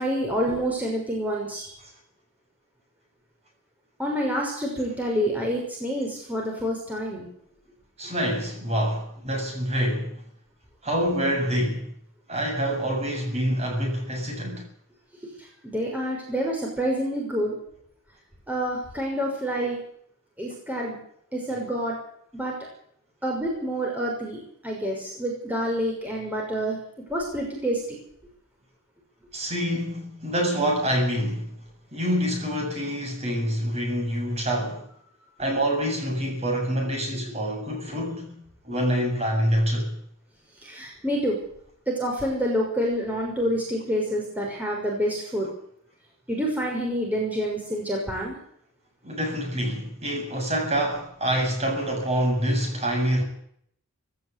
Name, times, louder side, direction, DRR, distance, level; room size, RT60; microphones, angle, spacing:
voice 1, 0.0-1.8 4.0-7.3 15.2-17.6 18.5-19.8 20.4-21.0 21.3-22.0 22.3-22.5 23.2-26.8 27.1-27.8 40.6-41.4 41.9-45.5 46.3-48.3, equal, 5° right, 6.0 m, -27 dB
voice 2, 8.0-10.2 10.8-11.9 12.3-14.7 29.3-31.5 31.9-34.8 35.4-38.4 38.6-39.9 49.0-53.2, equal, 30° right, 7.7 m, -26 dB
18.5 x 17.5 x 8.5 m
head